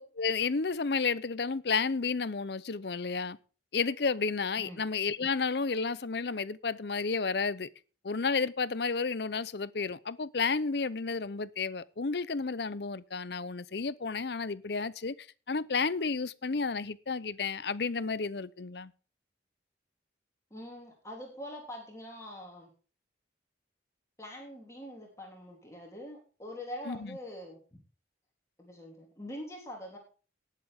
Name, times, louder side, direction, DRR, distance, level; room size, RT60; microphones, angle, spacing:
voice 1, 0.0-3.4 3.7-7.7 8.0-15.1 15.5-18.9 26.9-27.2, left 4 dB, 65° left, 0.7 m, -31 dB
voice 2, 20.5-22.7 24.2-27.6 28.6-30.0, left 1 dB, 15° left, 3.2 m, -44 dB
18.5 x 7.6 x 3.6 m
head